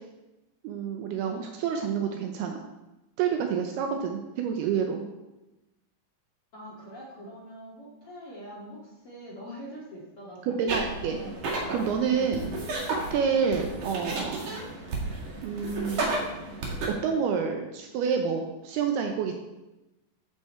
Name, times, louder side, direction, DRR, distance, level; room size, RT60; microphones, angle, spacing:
voice 1, 0.6-2.6 3.2-5.0 10.6-11.2 11.7-12.4 12.9-14.5 15.4-16.2 16.9-19.3, right 6 dB, 85° right, 3 dB, 2.3 m, -28 dB
voice 2, 6.5-11.4 12.1-12.5, equal, 60° left, -5 dB, 1.4 m, -44 dB
sound 1, 10.7-16.9, right 2 dB, 50° right, 2.3 m, -33 dB
13.5 x 7.3 x 4.4 m, 1.0 s
omnidirectional pair, 5.7 m